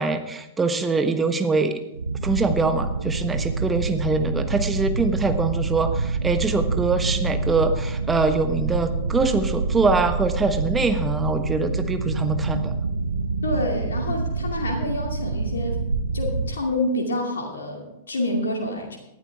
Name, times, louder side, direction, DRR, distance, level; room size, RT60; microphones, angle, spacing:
voice 1, 0.0-1.8 2.2-12.7, right 3 dB, 15° right, 8 dB, 1.2 m, -23 dB
sound 1, 1.9-16.6, right 3 dB, 80° right, 0.8 m, -26 dB
voice 2, 13.4-15.8 16.1-19.0, left 1 dB, 70° left, 1 dB, 2.5 m, -27 dB
19.0 x 11.5 x 3.5 m, 0.89 s
figure-of-eight pair, 100°, 0 cm